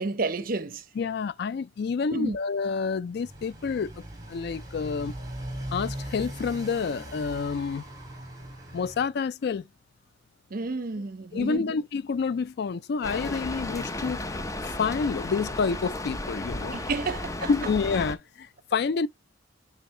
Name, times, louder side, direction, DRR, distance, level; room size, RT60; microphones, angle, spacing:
voice 1, 0.0-0.8 2.1-2.4 10.5-11.6 16.7-17.5, right 3 dB, 50° right, 0.7 m, -30 dB
voice 2, 1.0-3.9 4.3-5.1 5.7-7.8 8.7-9.6 11.3-14.2 14.6-16.8 17.5-19.1, left 5 dB, 60° left, 0.4 m, -28 dB
Motorcycle, 3.1-9.1, right 1 dB, 20° right, 2.6 m, -39 dB
Rain, 13.0-18.1, left 2 dB, 15° left, 0.6 m, -34 dB
9.1 x 3.5 x 3.2 m
head